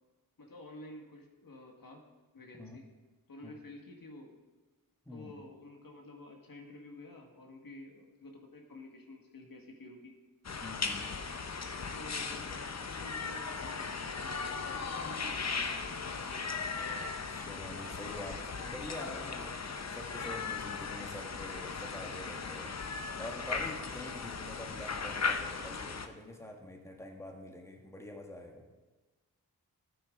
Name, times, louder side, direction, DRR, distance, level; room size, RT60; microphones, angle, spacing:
voice 1, 0.4-2.0 2.3-2.8 3.3-4.3 5.1-10.1 11.9-15.8 16.0-16.5, left 2 dB, 70° left, 2 dB, 1.5 m, -50 dB
voice 2, 5.0-5.4 10.6-11.2 16.9-28.6, left 1 dB, 10° left, 2 dB, 1.3 m, -46 dB
sound 1, 10.4-26.1, left 5 dB, 45° left, 0.7 m, -37 dB
13.5 x 9.0 x 3.6 m, 1.2 s
wide cardioid pair, 75°, 36 cm